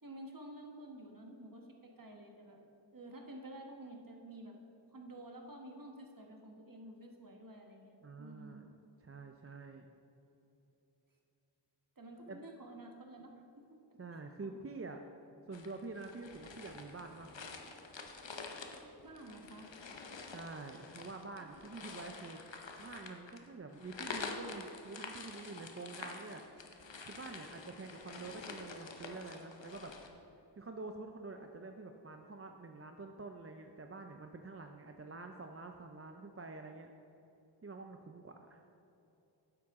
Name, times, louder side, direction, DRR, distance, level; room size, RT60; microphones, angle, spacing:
voice 1, 0.0-2.6 2.9-4.5 4.9-8.7 12.0-13.4 13.7-14.0 14.4-14.6 19.0-19.7 21.4-21.6, right 1 dB, 50° right, 1 dB, 1.3 m, -51 dB
voice 2, 8.0-8.7 9.0-9.9 12.3-12.4 14.0-15.0 15.5-17.7 20.3-22.4 22.8-26.4 27.0-29.9 30.6-36.9 37.6-38.6, right 3 dB, 35° right, 4 dB, 0.5 m, -47 dB
sound 1, 15.5-30.1, left 4 dB, 85° left, 0.8 m, -48 dB
9.8 x 7.6 x 3.6 m, 3.0 s
wide cardioid pair, 45°, 43 cm